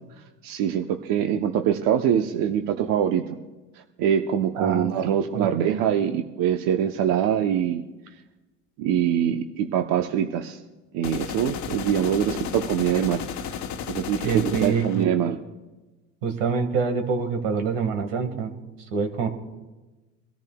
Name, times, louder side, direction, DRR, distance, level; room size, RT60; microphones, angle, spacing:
voice 1, 0.4-3.4 4.0-7.8 8.8-10.6 10.9-13.6 13.9-15.4, right 9 dB, 65° right, 6 dB, 0.9 m, -24 dB
voice 2, 4.6-4.9 5.3-5.5 14.2-15.1 16.2-18.5 18.9-19.3, right 5 dB, 85° right, 6 dB, 1.7 m, -25 dB
sound 1, 11.0-15.0, left 8 dB, 50° left, 1.0 m, -33 dB
24.0 x 13.5 x 2.3 m, 1.2 s
supercardioid pair, 85°, 36 cm